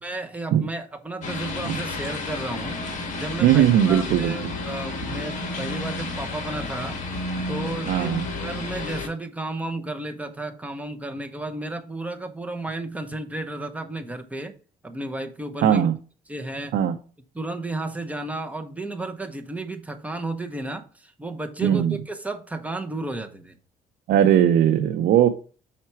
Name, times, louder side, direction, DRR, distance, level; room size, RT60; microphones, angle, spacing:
voice 1, 0.0-7.0 7.5-8.1 8.4-14.5 14.8-15.8 16.3-16.7 17.3-23.6, right 2 dB, 10° right, 6 dB, 0.9 m, -33 dB
sound 1, 1.2-9.1, left 2 dB, 45° left, 1.8 m, -31 dB
voice 2, 3.4-4.3 7.9-8.2 15.6-15.9 16.7-16.9 21.6-21.9 24.1-25.3, right 10 dB, 70° right, 7 dB, 0.6 m, -18 dB
5.8 x 4.3 x 4.5 m, 0.38 s
cardioid pair, 110°, 17 cm